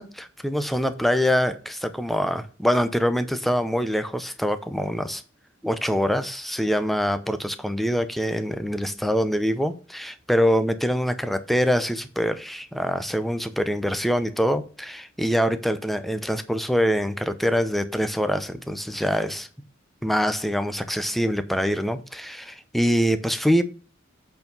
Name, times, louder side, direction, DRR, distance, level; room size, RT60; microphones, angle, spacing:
voice 1, 0.0-5.2 5.6-19.5 20.0-23.6, equal, ahead, 0.6 m, -24 dB
8.2 x 4.6 x 5.3 m
head